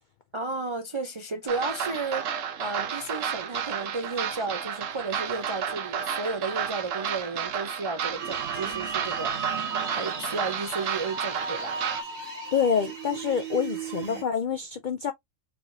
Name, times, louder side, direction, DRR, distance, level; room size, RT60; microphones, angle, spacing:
voice 1, 0.3-2.3 2.6-9.3 9.9-11.8, right 3 dB, 50° right, 0.3 m, -33 dB
sound 1, 1.5-12.0, right 8 dB, 75° right, 1.1 m, -32 dB
sound 2, 8.2-14.2, right 6 dB, 90° right, 1.9 m, -35 dB
voice 2, 12.5-15.1, left 7 dB, 70° left, 0.4 m, -27 dB
4.2 x 3.0 x 2.6 m
omnidirectional pair, 1.4 m